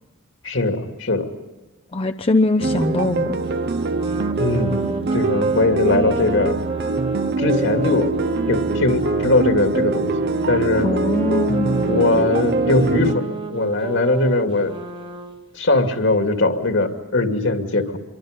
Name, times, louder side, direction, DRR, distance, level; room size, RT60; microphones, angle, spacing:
voice 1, 0.4-1.3 4.4-4.7 5.1-6.6 7.4-8.1 8.5-10.1 10.5-10.9 11.9-14.7 15.5-17.9, left 2 dB, 70° left, 5 dB, 2.5 m, -20 dB
voice 2, 1.9-3.4 10.8-12.3, left 2 dB, 25° left, 7 dB, 0.6 m, -22 dB
sound 1, 2.6-13.1, right 3 dB, 50° right, 0.6 m, -23 dB
Wind instrument woodwind instrument, 3.5-9.3 10.0-15.4, right 2 dB, 25° right, 1.3 m, -30 dB
27.0 x 23.5 x 5.2 m, 1.2 s
head